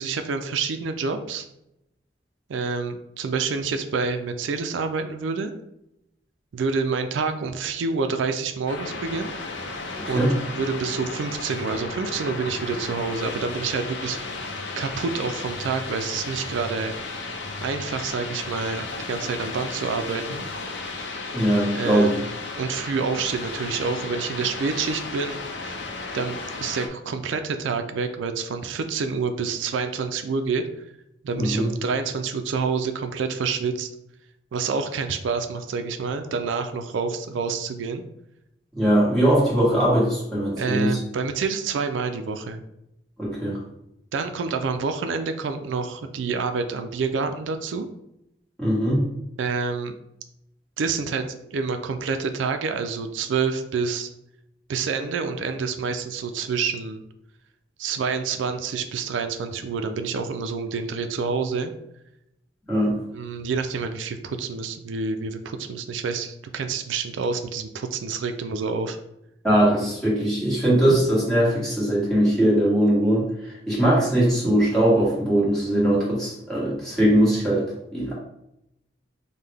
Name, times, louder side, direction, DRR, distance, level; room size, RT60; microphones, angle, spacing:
voice 1, 0.0-1.5 2.5-5.5 6.5-9.3 10.1-14.2 14.8-16.9 17.6-20.4 21.7-22.2 22.6-25.8 26.1-30.6 31.2-33.9 34.5-38.0 40.6-42.6 44.1-47.9 49.4-49.9 50.8-54.1 54.7-57.0 57.8-61.7 63.1-69.0, right 5 dB, 90° right, 8 dB, 0.4 m, -28 dB
sound 1, 8.7-26.9, left 3 dB, 80° left, 0.6 m, -34 dB
voice 2, 10.0-10.3 21.3-22.1 31.3-31.7 38.7-40.9 43.2-43.6 48.6-49.0 62.7-62.9 69.4-77.6 77.9-78.1, right 1 dB, 5° left, -8 dB, 1.4 m, -20 dB
5.5 x 2.1 x 3.3 m, 0.84 s
head